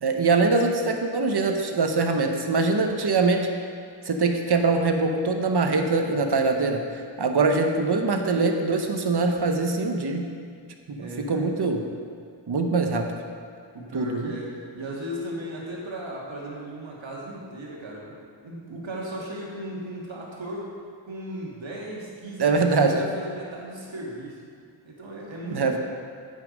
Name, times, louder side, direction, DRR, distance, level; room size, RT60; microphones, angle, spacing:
voice 1, 0.0-3.5 4.0-10.3 10.9-11.8 12.5-13.1 13.9-14.3 22.4-23.0 25.5-25.8, right 3 dB, 60° right, 4 dB, 0.9 m, -23 dB
voice 2, 10.9-11.4 13.7-18.1 18.4-20.7 21.0-24.4 24.8-25.8, right 1 dB, 85° right, -3 dB, 1.6 m, -36 dB
9.3 x 5.7 x 5.1 m, 2.2 s
wide cardioid pair, 65°, 45 cm